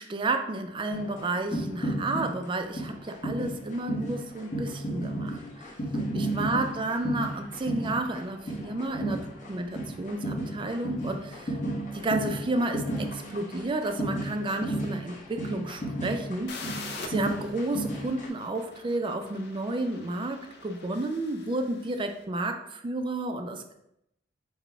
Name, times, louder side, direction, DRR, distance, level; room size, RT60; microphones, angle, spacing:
voice 1, 0.0-5.7 6.1-11.6 11.9-16.6 17.1-23.7, right 2 dB, 25° right, 6 dB, 0.3 m, -31 dB
sound 1, 0.9-18.3, right 1 dB, 45° left, 0.9 m, -34 dB
sound 2, 16.5-22.1, left 3 dB, 60° left, 0.5 m, -44 dB
4.0 x 2.1 x 4.3 m, 0.80 s
head